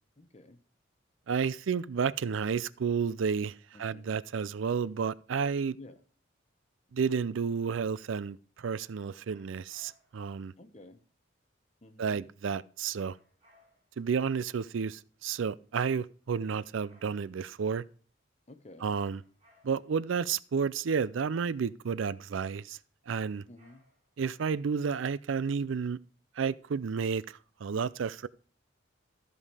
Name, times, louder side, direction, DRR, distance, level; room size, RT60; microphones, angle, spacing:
voice 1, 0.2-0.6 3.7-4.1 5.8-6.0 10.6-11.0 11.8-12.2 18.5-18.9 23.5-23.8, left 2 dB, 35° left, 0.9 m, -52 dB
voice 2, 1.3-5.8 6.9-10.5 12.0-13.2 14.0-17.8 18.8-19.2 19.6-22.8 23.1-23.4 24.2-26.0 26.4-28.3, right 6 dB, 80° right, 0.4 m, -31 dB
sound 1, 9.2-10.3 12.9-14.0 16.4-17.5 18.9-20.0 23.1-24.2, left 1 dB, 30° right, 3.9 m, -65 dB
13.0 x 5.4 x 4.8 m
head